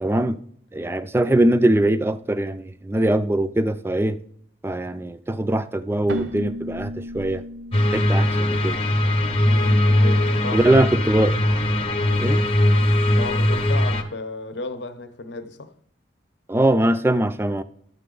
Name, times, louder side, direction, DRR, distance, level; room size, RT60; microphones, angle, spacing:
voice 1, 0.0-0.4 0.7-4.2 4.6-7.4 7.9-8.8 10.5-11.4 12.2-12.4 16.5-17.6, right 1 dB, 10° right, 0.3 m, -21 dB
Keyboard (musical), 6.1-9.7, left 1 dB, 70° right, 0.7 m, -36 dB
sound 1, 7.7-14.0, left 1 dB, 30° left, 0.8 m, -20 dB
voice 2, 9.3-10.9 13.1-15.7, left 3 dB, 65° left, 0.7 m, -34 dB
12.0 x 6.7 x 3.8 m
head